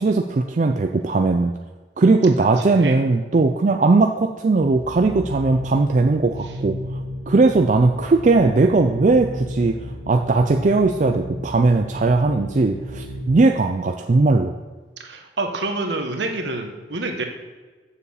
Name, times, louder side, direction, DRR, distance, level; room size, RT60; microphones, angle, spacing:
voice 1, 0.0-1.5 2.0-6.8 7.3-9.8 10.1-14.5, right 3 dB, 40° right, 4 dB, 0.4 m, -18 dB
voice 2, 2.3-3.0 15.0-17.2, right 2 dB, 70° right, 4 dB, 1.3 m, -28 dB
sound 1, 4.6-13.2, equal, 60° left, 1.9 m, -34 dB
7.0 x 6.9 x 7.0 m, 1.3 s
head